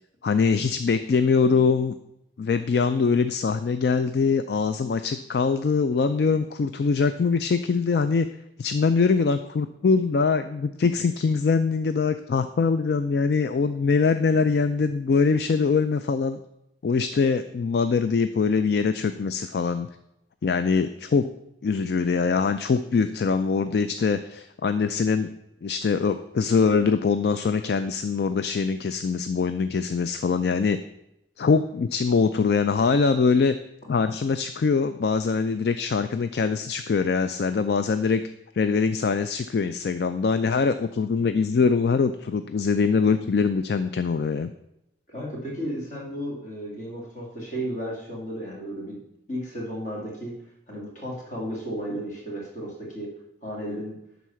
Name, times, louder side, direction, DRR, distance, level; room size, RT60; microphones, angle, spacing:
voice 1, 0.2-2.0 2.4-8.3 8.6-16.4 16.8-19.9 20.4-21.3 21.6-25.3 25.6-30.8 31.4-33.5 33.9-38.2 38.5-44.5, left 5 dB, 60° left, 10 dB, 0.4 m, -23 dB
voice 2, 45.1-49.0 49.3-50.3 50.7-53.1 53.4-54.0, equal, 45° left, -3 dB, 2.5 m, -33 dB
11.0 x 4.1 x 5.7 m, 0.83 s
head